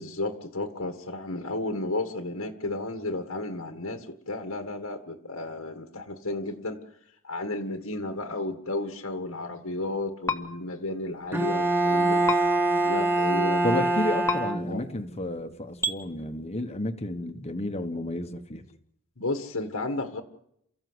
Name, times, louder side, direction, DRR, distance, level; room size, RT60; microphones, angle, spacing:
voice 1, 0.0-6.8 7.2-12.5 12.8-13.9 14.7-14.8 19.2-20.2, left 2 dB, 75° left, 5 dB, 1.8 m, -33 dB
sound 1, 10.3-10.4 12.3-12.4 14.3-14.4 15.8-16.0, left 2 dB, 15° left, 1.5 m, -26 dB
Bowed string instrument, 11.3-15.1, right 2 dB, 10° right, 1.5 m, -24 dB
voice 2, 13.6-18.7, left 1 dB, 30° left, 7 dB, 1.3 m, -31 dB
29.0 x 15.0 x 8.1 m, 0.77 s
head